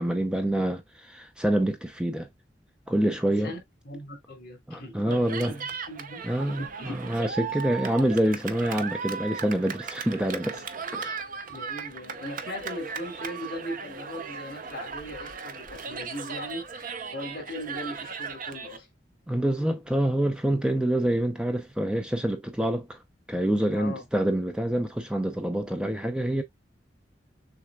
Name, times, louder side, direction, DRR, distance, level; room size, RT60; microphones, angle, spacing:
voice 1, 0.0-2.3 2.9-3.5 4.7-5.5 6.2-10.6 10.9-11.2 19.3-23.0 23.3-26.4, right 1 dB, 5° right, 0.6 m, -26 dB
voice 2, 3.8-7.3 10.2-10.7 11.5-18.9 23.7-24.1, left 1 dB, 55° left, 2.9 m, -39 dB
Cheering, 5.1-18.8, right 6 dB, 50° right, 0.7 m, -37 dB
6.6 x 3.5 x 2.3 m
head